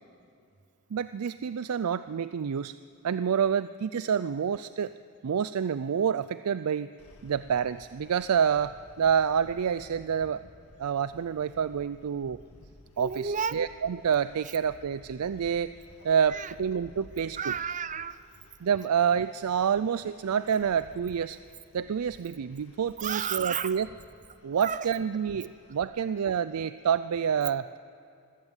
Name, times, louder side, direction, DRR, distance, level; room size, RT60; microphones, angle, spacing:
voice 1, 0.9-2.7 3.0-4.9 5.2-6.9 7.2-10.4 10.8-12.4 13.0-15.7 16.0-17.5 18.6-21.4 21.7-23.9 24.4-27.8, right 7 dB, 80° right, 14 dB, 0.4 m, -28 dB
sound 1, 7.0-25.8, left 1 dB, 80° left, 1.8 m, -55 dB
voice 2, 13.0-13.6 16.3-16.5 17.4-18.2 23.0-23.8 24.6-24.9, right 6 dB, 35° right, 15 dB, 0.7 m, -32 dB
24.0 x 16.0 x 8.2 m, 2.5 s
head